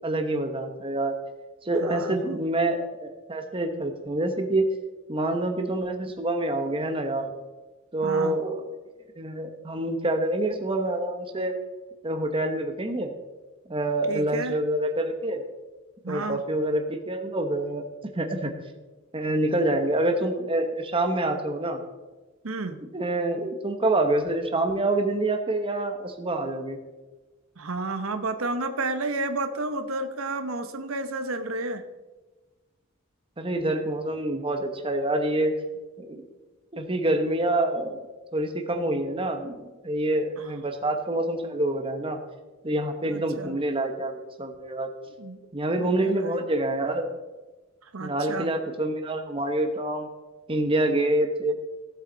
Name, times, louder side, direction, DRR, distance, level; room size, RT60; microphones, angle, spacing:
voice 1, 0.0-1.2 1.6-4.7 5.1-7.3 7.9-8.6 9.2-11.5 12.0-13.1 13.7-15.4 16.1-17.8 18.1-18.5 19.1-21.8 22.9-26.8 33.4-35.5 36.0-36.3 36.7-38.1 38.3-42.2 42.6-44.9 45.5-47.1 48.0-50.1 50.5-51.6, right 1 dB, 25° right, 5 dB, 1.1 m, -26 dB
voice 2, 1.8-2.4 8.0-8.4 14.1-14.6 16.0-16.4 22.4-22.8 27.6-31.8 40.4-40.5 43.0-43.6 45.2-45.4 45.8-46.4 47.8-48.5, right 2 dB, 85° right, 8 dB, 1.0 m, -31 dB
16.5 x 8.0 x 4.0 m, 1.2 s
head